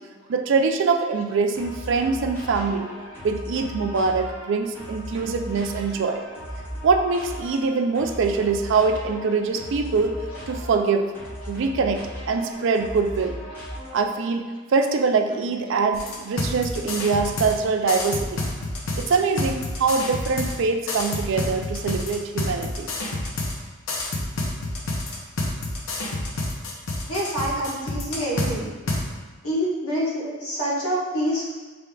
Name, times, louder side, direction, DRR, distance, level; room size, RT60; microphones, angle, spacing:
voice 1, 0.3-2.9 3.2-6.2 6.8-10.1 10.5-11.1 11.5-13.4 13.9-18.4 19.0-22.9, right 4 dB, 55° right, 5 dB, 0.3 m, -23 dB
sound 1, 1.5-14.3, equal, 10° left, 1.4 m, -37 dB
sound 2, 15.9-17.5 17.9-20.5 20.9-23.5 23.9-28.5 28.9-29.0, left 2 dB, 65° left, 0.7 m, -28 dB
voice 2, 27.1-28.7 29.4-31.6, equal, 85° left, -6 dB, 1.4 m, -26 dB
6.0 x 3.4 x 2.3 m, 1.3 s
head